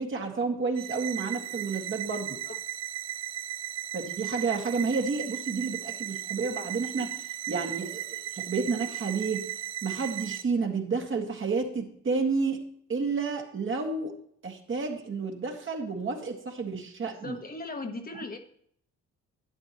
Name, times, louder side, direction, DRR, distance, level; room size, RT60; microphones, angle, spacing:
voice 1, 0.0-2.4 3.9-9.5 9.8-12.6 12.9-14.1 14.4-17.4, right 4 dB, 40° right, 2 dB, 1.8 m, -30 dB
sound 1, 0.8-10.4, right 12 dB, 60° right, 0.5 m, -36 dB
voice 2, 2.2-2.5 17.2-18.4, left 3 dB, 30° left, 4 dB, 1.1 m, -38 dB
11.5 x 9.2 x 3.0 m, 0.65 s
cardioid pair, 90°, 30 cm